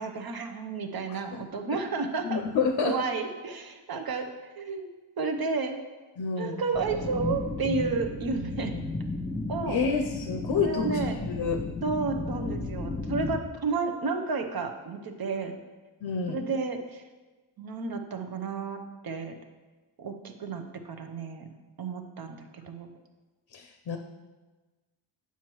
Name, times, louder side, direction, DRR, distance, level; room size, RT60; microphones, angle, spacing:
voice 1, 0.0-2.5 2.8-4.3 4.6-4.9 5.2-5.8 6.4-8.7 9.5-9.8 10.5-11.2 11.8-15.6 16.3-17.0 17.6-19.4 20.0-21.5 21.8-22.9, right 4 dB, 45° right, 6 dB, 0.8 m, -32 dB
voice 2, 2.2-3.0 6.2-6.6 9.7-11.6 16.0-16.4 23.5-24.0, left 5 dB, 50° left, 5 dB, 0.6 m, -29 dB
sound 1, 6.7-13.4, left 3 dB, 20° left, 0.9 m, -34 dB
7.2 x 5.7 x 3.0 m, 1.2 s
cardioid pair, 50°, 49 cm